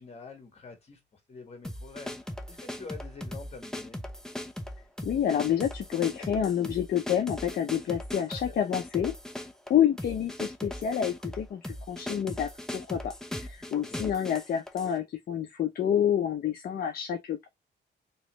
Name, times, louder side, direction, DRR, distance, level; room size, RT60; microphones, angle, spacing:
voice 1, 0.0-4.0 8.3-8.5 13.7-14.0, left 4 dB, 35° left, 1.6 m, -46 dB
sound 1, 1.6-14.9, left 1 dB, 5° left, 0.5 m, -39 dB
voice 2, 5.0-9.1 9.7-17.5, left 9 dB, 55° left, 0.6 m, -28 dB
3.1 x 3.0 x 3.1 m
cardioid pair, 125°, 19 cm